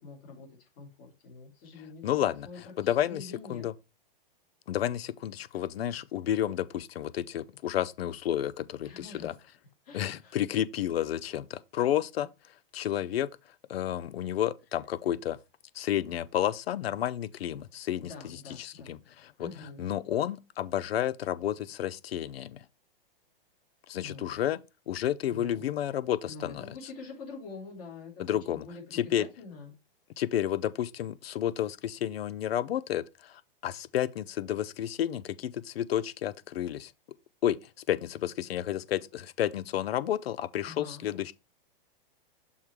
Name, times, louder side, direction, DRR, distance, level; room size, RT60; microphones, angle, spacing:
voice 1, 0.0-2.0 2.4-3.6 8.8-9.3 9.8-10.3 18.0-18.9 19.4-19.9 24.0-24.3 25.3-25.6 26.3-29.7 40.6-41.0, left 4 dB, 40° left, 2.9 m, -46 dB
voice 2, 2.0-3.7 4.7-9.3 9.9-12.3 12.7-13.3 13.7-15.4 15.7-19.5 19.8-22.6 23.9-24.6 24.9-26.7 28.2-28.6 28.9-29.3 30.2-36.9 37.4-41.3, left 11 dB, 85° left, 0.6 m, -31 dB
6.3 x 3.7 x 4.5 m
hypercardioid pair, 155°, 30 cm